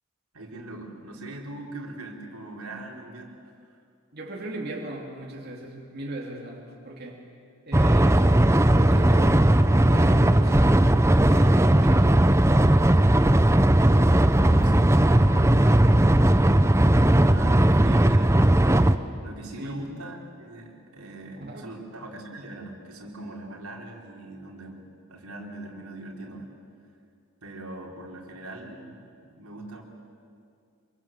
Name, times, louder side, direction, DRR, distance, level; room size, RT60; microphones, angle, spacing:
voice 1, 0.3-3.5 13.8-16.3 16.8-18.6 19.2-26.5 27.4-29.0 29.3-29.8, right 2 dB, 90° right, -1 dB, 4.0 m, -41 dB
voice 2, 4.1-7.2 7.7-10.8 11.2-12.3 19.5-20.0 21.4-21.7, right 1 dB, 45° right, -1 dB, 2.9 m, -38 dB
sound 1, 7.7-19.0, right 1 dB, 15° right, 0.6 m, -18 dB
26.5 x 25.0 x 7.6 m, 2.3 s
head